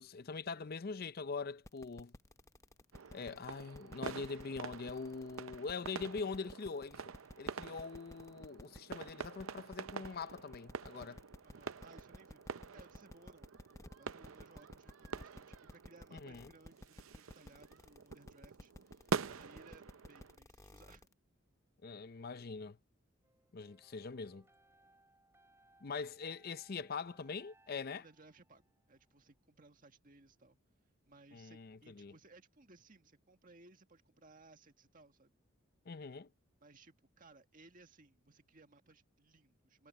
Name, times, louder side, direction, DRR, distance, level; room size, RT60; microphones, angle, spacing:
voice 1, 0.0-2.1 3.1-7.0 7.4-11.2 16.1-16.5 21.8-22.8 23.5-24.4 25.8-28.0 31.3-32.1 35.9-36.3, left 4 dB, 45° left, 0.5 m, -43 dB
sound 1, 1.6-21.1, left 1 dB, 15° left, 0.7 m, -54 dB
sound 2, 2.9-20.4, right 5 dB, 80° right, 0.6 m, -46 dB
voice 2, 11.4-13.5 14.0-21.1 27.9-30.6 31.1-35.3 36.6-39.9, right 3 dB, 40° right, 1.8 m, -62 dB
sound 3, 23.2-29.2, right 2 dB, 15° right, 4.8 m, -70 dB
head